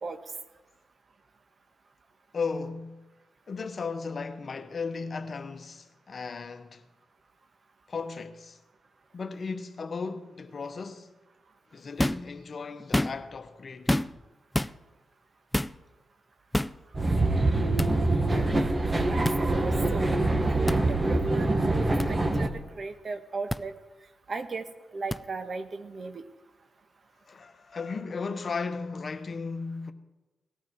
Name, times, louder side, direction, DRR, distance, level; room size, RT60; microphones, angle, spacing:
voice 1, 2.3-3.0 3.5-6.8 7.9-8.6 9.1-11.1 11.7-14.0 27.3-29.9, left 4 dB, 50° left, 1.1 m, -35 dB
sound 1, 12.0-12.3 12.8-13.4 13.9-14.3 14.5-14.7 15.5-15.8 16.5-16.8 17.8-17.9 19.2-19.4 20.7-20.8 22.0-22.1 23.5-23.6 25.1-25.2, left 1 dB, 10° left, 0.4 m, -27 dB
sound 2, 16.9-22.5, right 2 dB, 30° right, 1.5 m, -25 dB
voice 2, 19.1-20.1 20.5-22.5 22.8-23.7 24.3-24.6 24.9-26.2, right 4 dB, 50° right, 1.3 m, -36 dB
19.0 x 12.5 x 4.6 m
cardioid pair, 70°, 0 cm